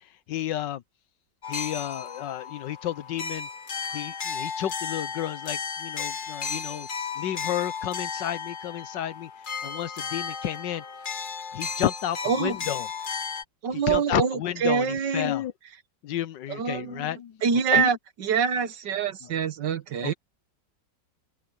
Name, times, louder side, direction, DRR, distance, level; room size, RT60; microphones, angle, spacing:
voice 1, 0.3-0.8 1.5-3.5 3.9-6.9 7.2-9.3 9.6-10.8 11.5-12.9 13.9-15.5 16.0-17.4 17.7-17.9 20.0-20.1, left 11 dB, 85° left, 1.6 m, -31 dB
sound 1, 1.4-13.4, left 6 dB, 35° left, 0.9 m, -34 dB
voice 2, 12.2-12.6 13.6-15.3 16.5-17.1 17.4-20.1, right 7 dB, 80° right, 1.9 m, -25 dB
open air
omnidirectional pair, 1.9 m